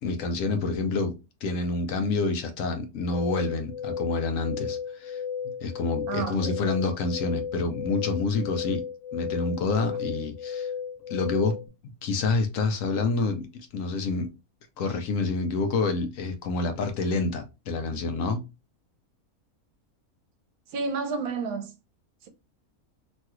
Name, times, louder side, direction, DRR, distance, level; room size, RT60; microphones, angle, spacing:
voice 1, 0.0-1.1 1.4-5.2 5.6-8.8 9.1-10.7 11.1-11.6 11.8-14.3 14.8-18.4, left 3 dB, 70° left, 0.9 m, -28 dB
sound 1, 3.1-11.6, left 7 dB, 30° left, 0.5 m, -34 dB
voice 2, 6.1-6.6 20.7-21.7 22.2-22.3, right 4 dB, 80° right, 1.2 m, -31 dB
3.1 x 2.3 x 2.8 m
omnidirectional pair, 1.6 m